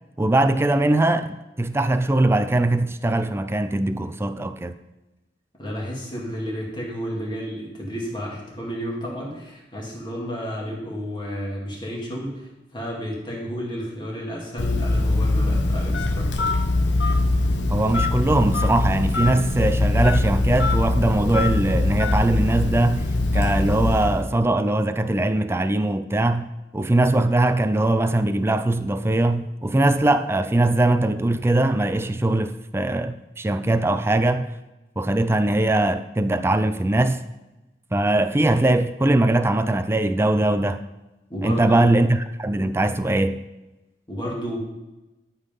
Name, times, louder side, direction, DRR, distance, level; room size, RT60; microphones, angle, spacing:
voice 1, 0.2-4.8 17.7-34.5 35.0-37.2 37.9-40.8 41.4-43.4, right 2 dB, 15° right, 0.4 m, -21 dB
voice 2, 5.6-16.5 41.3-42.0 44.1-44.6, equal, 25° left, 2.6 m, -31 dB
Telephone, 14.6-24.3, left 2 dB, 80° left, 1.0 m, -22 dB
12.0 x 5.6 x 5.4 m
head